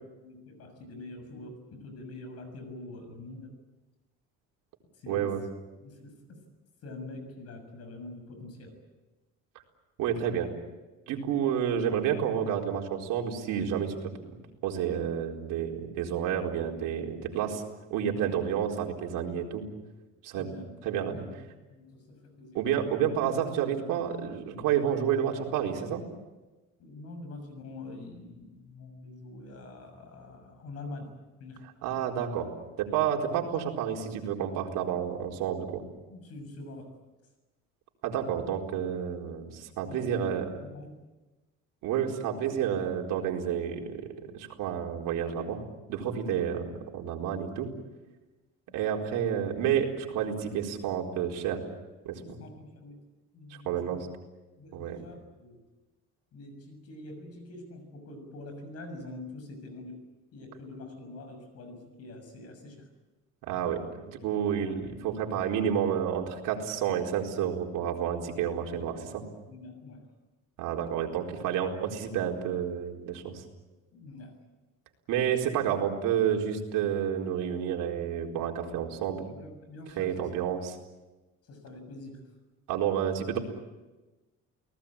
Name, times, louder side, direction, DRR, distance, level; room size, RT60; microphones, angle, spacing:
voice 1, 0.2-3.5 4.9-5.3 5.8-6.4 6.8-8.7 18.1-18.3 20.3-21.3 21.7-22.6 26.8-31.1 31.4-31.6 36.1-36.9 39.9-40.2 40.6-40.9 48.7-48.8 52.2-53.0 53.3-54.0 54.6-55.6 56.3-60.0 60.3-62.9 69.4-70.0 73.9-74.4 79.3-80.3 81.4-82.2, left 2 dB, 50° left, 7 dB, 6.8 m, -45 dB
voice 2, 5.1-5.4 10.0-10.5 11.1-14.1 14.6-17.6 17.9-19.6 20.2-20.5 20.8-21.2 22.5-26.0 31.8-32.5 32.8-35.8 38.0-40.4 41.8-44.0 44.3-45.6 45.9-47.7 48.7-51.6 52.0-52.2 53.6-54.1 54.7-55.0 63.4-69.2 70.6-73.4 75.1-79.3 80.0-80.7 82.7-83.4, right 9 dB, 75° right, 1 dB, 4.4 m, -30 dB
29.5 x 19.0 x 8.8 m, 1.2 s
cardioid pair, 160°, 32 cm